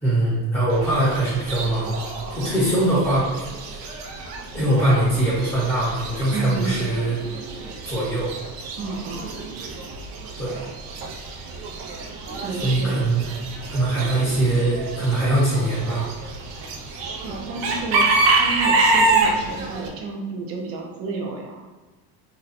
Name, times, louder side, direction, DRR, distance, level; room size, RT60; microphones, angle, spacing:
voice 1, 0.0-2.0 2.3-3.3 3.7-3.8 4.5-7.2 7.8-8.3 10.4-10.6 12.6-13.3 13.7-16.1, right 1 dB, 10° left, -9 dB, 0.7 m, -22 dB
Chicken rooster / Bird, 0.7-19.9, right 3 dB, 85° right, 0.6 m, -27 dB
voice 2, 6.3-6.8 8.7-9.3 12.4-13.1 17.0-21.6, right 3 dB, 35° right, 0 dB, 0.5 m, -31 dB
2.6 x 2.1 x 4.0 m, 1.2 s
cardioid pair, 170°, 43 cm